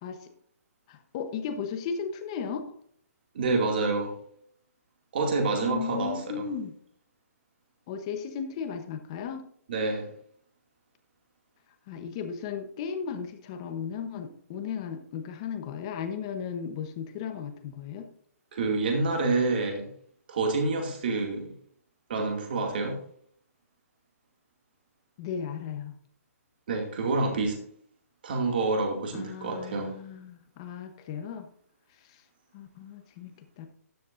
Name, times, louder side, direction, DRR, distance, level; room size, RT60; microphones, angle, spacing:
voice 1, 0.9-2.6 5.5-6.7 7.9-9.4 11.9-18.1 25.2-25.9 29.1-31.5 32.1-32.2 32.5-33.7, left 7 dB, 20° left, 7 dB, 0.9 m, -36 dB
voice 2, 3.3-4.1 5.1-6.5 9.7-10.1 18.5-19.9 20.3-21.5 22.1-23.0 26.7-27.6 28.2-30.0, right 3 dB, 35° right, 2 dB, 2.3 m, -27 dB
12.5 x 10.5 x 2.6 m, 0.63 s
hypercardioid pair, 180°, 9 cm